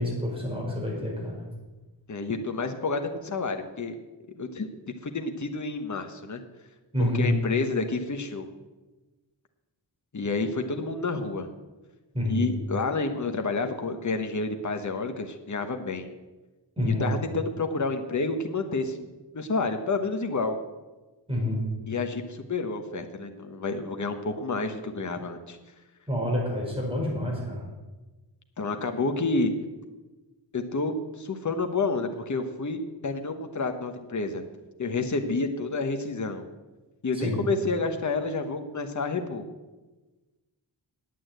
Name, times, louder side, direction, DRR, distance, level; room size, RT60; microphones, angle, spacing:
voice 1, 0.0-1.5 6.9-7.3 12.1-12.5 16.8-17.1 21.3-21.7 26.1-27.6 37.1-37.4, left 1 dB, 10° right, -2 dB, 5.0 m, -28 dB
voice 2, 2.1-3.9 4.4-4.7 5.0-6.4 7.0-8.5 10.1-11.5 12.3-16.1 16.9-19.1 19.3-20.6 21.9-25.6 28.6-29.5 30.5-34.4 34.8-36.5 37.0-39.4, left 3 dB, 40° left, 6 dB, 1.2 m, -29 dB
9.6 x 8.6 x 8.0 m, 1.2 s
wide cardioid pair, 100°, 45 cm